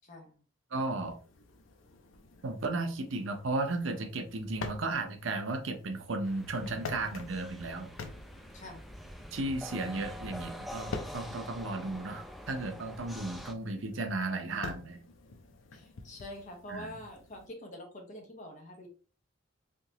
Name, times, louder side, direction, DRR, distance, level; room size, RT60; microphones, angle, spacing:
voice 1, 0.0-0.4 8.5-8.9 15.7-18.9, left 1 dB, 40° left, 2 dB, 0.9 m, -46 dB
voice 2, 0.7-1.2 2.4-7.9 9.3-15.0 16.7-16.9, right 2 dB, 80° right, 5 dB, 0.7 m, -34 dB
sound 1, 0.9-17.5, left 3 dB, 90° left, 0.5 m, -48 dB
sound 2, 6.2-13.5, equal, ahead, 0.3 m, -45 dB
3.4 x 2.8 x 2.8 m, 0.38 s
head